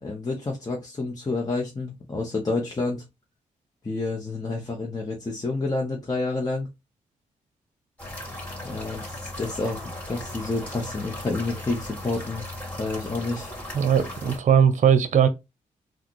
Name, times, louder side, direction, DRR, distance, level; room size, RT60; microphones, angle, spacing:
voice 1, 0.0-3.0 3.8-6.7 8.6-9.8 10.1-13.5, left 3 dB, 25° left, 1.0 m, -29 dB
sound 1, 8.0-14.4, left 1 dB, 10° left, 2.4 m, -37 dB
voice 2, 13.7-15.3, right 8 dB, 60° right, 0.7 m, -19 dB
3.6 x 2.4 x 3.1 m
cardioid pair, 55°, 14 cm